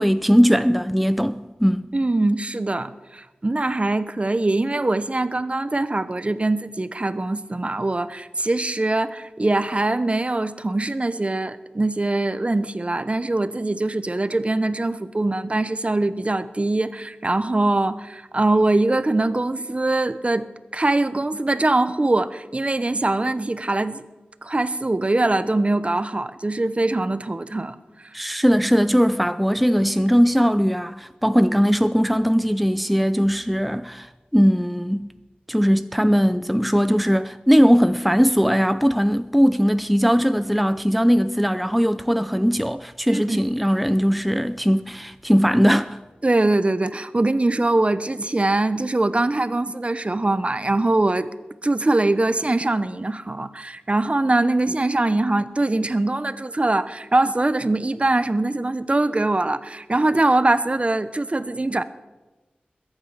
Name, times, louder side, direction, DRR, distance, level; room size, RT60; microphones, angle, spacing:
voice 1, 0.0-1.9 28.1-35.1 35.5-46.0, equal, ahead, 0.5 m, -19 dB
voice 2, 1.9-20.4 20.7-24.1 24.4-28.1 43.1-43.4 46.2-51.3 51.6-61.8, right 2 dB, 35° right, 0.8 m, -22 dB
21.5 x 9.0 x 5.7 m
wide cardioid pair, 50°, 3 cm